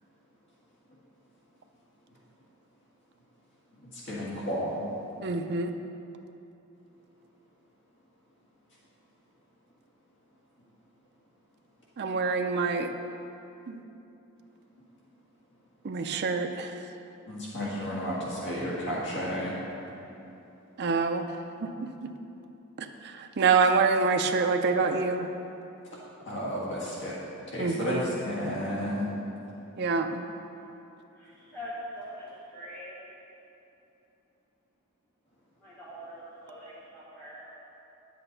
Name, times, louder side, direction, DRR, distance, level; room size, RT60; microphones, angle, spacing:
voice 1, 3.9-4.8 17.3-19.6 26.2-27.2 27.5-29.2, equal, 60° left, -6 dB, 1.6 m, -32 dB
voice 2, 5.2-5.7 12.0-12.9 13.7-13.8 15.8-16.7 20.8-21.3 23.4-25.3 27.6-28.0 29.8-30.2, right 4 dB, 50° right, 5 dB, 0.5 m, -26 dB
voice 3, 31.2-33.1 35.6-37.5, equal, 10° left, -11 dB, 2.2 m, -43 dB
9.9 x 7.7 x 4.0 m, 2.8 s
head